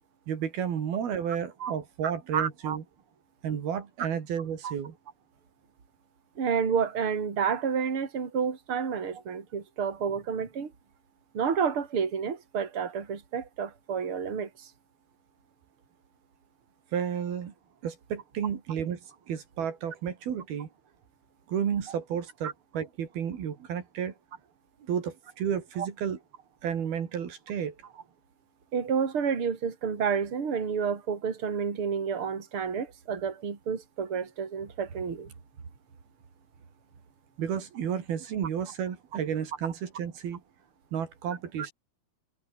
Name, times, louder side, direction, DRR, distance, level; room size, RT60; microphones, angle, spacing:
voice 1, 0.3-2.8 3.4-4.9 16.9-17.5 17.8-19.0 19.3-20.7 21.5-24.1 24.8-26.2 26.6-27.8 37.4-40.4 40.9-41.7, right 8 dB, 75° right, 4.6 m, -32 dB
voice 2, 2.3-2.8 4.6-4.7 6.4-10.7 11.3-14.7 22.4-22.5 25.8-25.9 28.7-35.3, right 6 dB, 35° right, 4.1 m, -30 dB
omnidirectional pair, 4.4 m